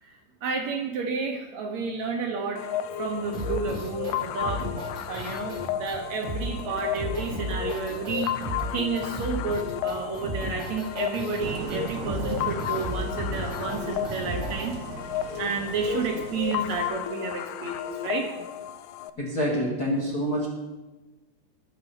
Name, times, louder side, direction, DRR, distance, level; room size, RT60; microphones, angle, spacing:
voice 1, 0.0-2.7 3.0-4.7 5.1-14.8 15.4-18.3, right 4 dB, 65° right, 3 dB, 2.0 m, -31 dB
sound 1, 2.6-19.1, left 11 dB, 80° left, 1.9 m, -33 dB
sound 2, 3.3-14.7, equal, 15° right, 1.8 m, -34 dB
sound 3, 11.4-16.9, right 8 dB, 80° right, 2.5 m, -39 dB
voice 2, 19.2-20.5, equal, 40° left, -5 dB, 1.5 m, -26 dB
20.5 x 7.0 x 5.5 m, 1.1 s
omnidirectional pair, 4.2 m